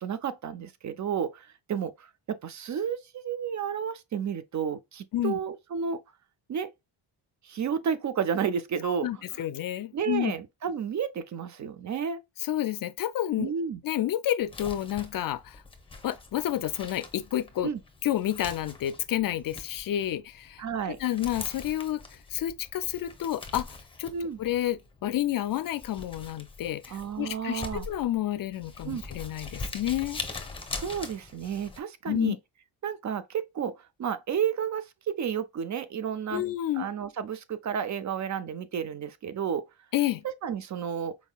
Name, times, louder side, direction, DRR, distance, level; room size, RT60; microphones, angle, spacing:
voice 1, 0.0-6.0 6.5-6.7 7.4-9.1 9.9-12.2 13.4-13.8 17.6-17.8 20.6-21.0 24.1-24.4 26.9-27.9 28.8-29.0 30.7-32.4 32.8-36.4 36.8-39.6 40.4-41.2, right 7 dB, 45° right, 0.5 m, -31 dB
voice 2, 8.8-10.3 12.4-13.5 13.8-15.6 16.0-17.7 18.0-20.6 21.0-22.0 22.3-30.2 32.1-32.4 36.3-36.9 39.9-40.2, left 12 dB, 55° left, 0.4 m, -30 dB
Crumpling crinkling, 14.4-31.8, left 3 dB, 10° left, 0.9 m, -43 dB
4.8 x 3.6 x 2.2 m
cardioid pair, 90°, 43 cm